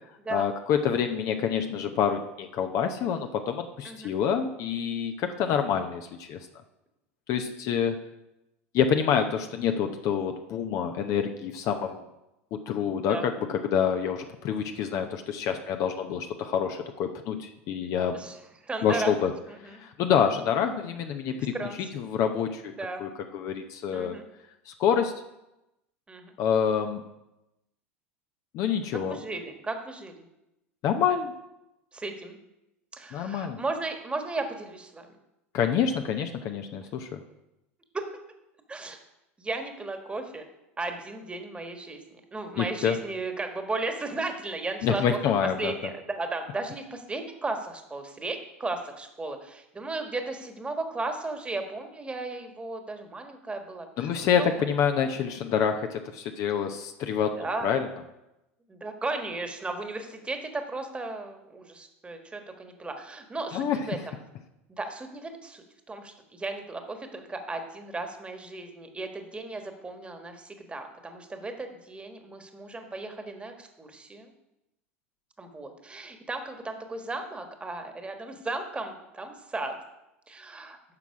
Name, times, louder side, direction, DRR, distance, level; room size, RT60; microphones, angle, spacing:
voice 1, 0.3-6.4 7.3-8.0 8.7-12.0 12.5-18.2 18.8-19.3 19.6-22.7 23.0-24.1 24.7-25.1 26.4-27.0 28.5-29.2 30.8-31.3 33.1-33.6 35.5-37.2 42.6-43.0 44.8-45.7 54.0-57.9 63.5-63.9, left 7 dB, 50° left, 6 dB, 0.8 m, -27 dB
voice 2, 18.1-19.1 19.5-19.8 21.5-21.8 22.8-23.0 23.9-24.2 26.1-26.3 29.1-30.2 31.9-32.4 32.9-35.1 37.9-38.0 38.7-39.0 39.4-40.4 40.8-42.0 42.3-45.2 45.6-54.1 54.4-54.6 57.4-57.7 58.7-64.1 64.7-74.3 75.4-79.7 80.3-80.8, right 3 dB, 15° right, 6 dB, 1.4 m, -35 dB
9.8 x 6.0 x 4.8 m, 0.91 s
hypercardioid pair, 85°, 7 cm